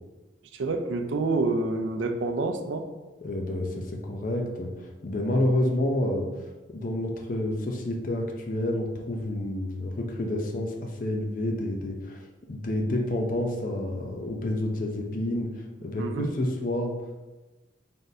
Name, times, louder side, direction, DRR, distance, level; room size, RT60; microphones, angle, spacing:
voice 1, 0.5-2.9 16.0-16.3, right 3 dB, 85° right, 6 dB, 0.4 m, -28 dB
voice 2, 3.2-6.3 6.7-12.2 12.5-16.9, left 1 dB, 45° left, 2 dB, 0.5 m, -29 dB
4.1 x 3.6 x 2.6 m, 1.2 s
head